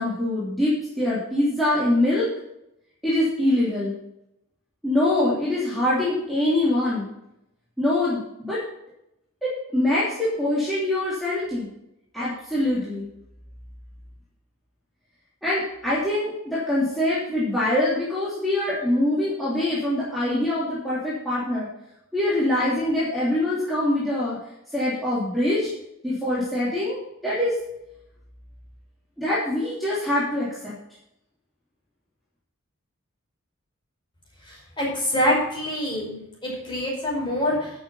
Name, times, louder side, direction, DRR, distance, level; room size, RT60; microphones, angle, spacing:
voice 1, 0.0-2.3 3.0-3.9 4.8-7.1 7.8-8.6 9.4-11.7 12.1-13.1 15.4-21.7 22.1-24.4 24.7-25.7 26.0-27.5 29.2-30.7, left 1 dB, ahead, -11 dB, 3.0 m, -24 dB
voice 2, 34.5-37.7, left 1 dB, 20° left, -4 dB, 5.0 m, -25 dB
11.5 x 7.3 x 5.6 m, 0.82 s
head